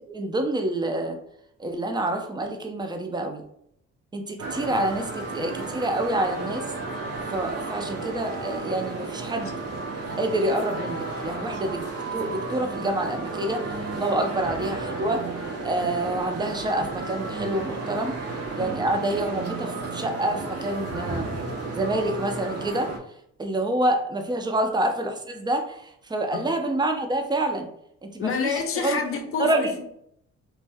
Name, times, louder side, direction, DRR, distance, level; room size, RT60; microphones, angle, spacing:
voice 1, 0.1-1.2 1.6-3.4 4.1-6.7 7.3-9.5 10.2-11.8 12.1-15.2 15.6-18.1 18.5-21.3 21.7-22.9 23.4-27.7 28.0-28.3 28.8-29.0 29.4-29.7, right 1 dB, 15° right, 4 dB, 0.4 m, -27 dB
sound 1, 4.4-23.0, right 3 dB, 55° right, 0.7 m, -33 dB
voice 2, 28.2-29.8, left 5 dB, 45° left, 6 dB, 0.6 m, -28 dB
2.5 x 2.2 x 3.3 m, 0.71 s
cardioid pair, 90°, 30 cm